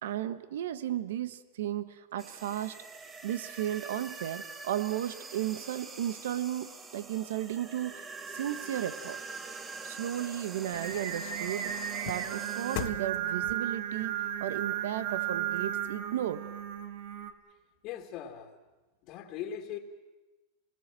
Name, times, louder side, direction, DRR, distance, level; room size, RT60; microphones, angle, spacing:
voice 1, 0.0-2.8 3.2-9.2 9.8-16.4, right 11 dB, 85° right, 13 dB, 1.2 m, -34 dB
sound 1, 2.2-12.9, right 4 dB, 20° right, 1.6 m, -44 dB
sound 2, 9.8-16.3 16.7-16.8, left 12 dB, 65° left, 1.7 m, -45 dB
Singing, 10.7-17.3, right 10 dB, 65° right, 2.2 m, -35 dB
voice 2, 17.8-18.6 19.0-19.8, left 9 dB, 45° left, 3 dB, 2.4 m, -40 dB
27.5 x 20.0 x 7.6 m, 1.1 s
supercardioid pair, 140°, 0 cm